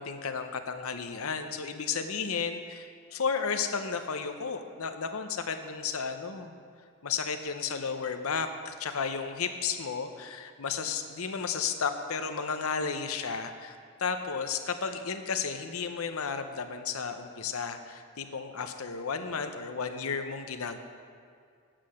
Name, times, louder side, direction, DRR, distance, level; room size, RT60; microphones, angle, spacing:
voice 1, 0.0-6.6 7.0-20.8, left 5 dB, 70° left, 8 dB, 0.7 m, -33 dB
8.7 x 7.6 x 6.3 m, 2.2 s
head